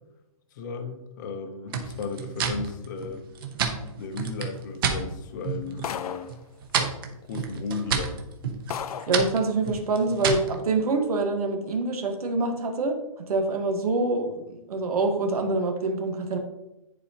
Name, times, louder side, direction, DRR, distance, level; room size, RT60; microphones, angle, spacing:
voice 1, 0.5-3.3 4.0-6.3 6.7-6.9 7.3-8.2, left 4 dB, 30° left, 7 dB, 0.7 m, -35 dB
sound 1, 1.7-5.0 5.4-6.0 6.3-10.6, right 6 dB, 40° right, 0.8 m, -30 dB
sound 2, 5.8-6.4 7.4-7.5 8.1-8.2 8.7-9.2, left 8 dB, 80° left, 0.5 m, -34 dB
voice 2, 9.1-13.0 13.3-16.4, right 3 dB, 90° right, 4 dB, 1.3 m, -26 dB
9.7 x 4.3 x 2.8 m, 0.94 s
hypercardioid pair, 170°, 19 cm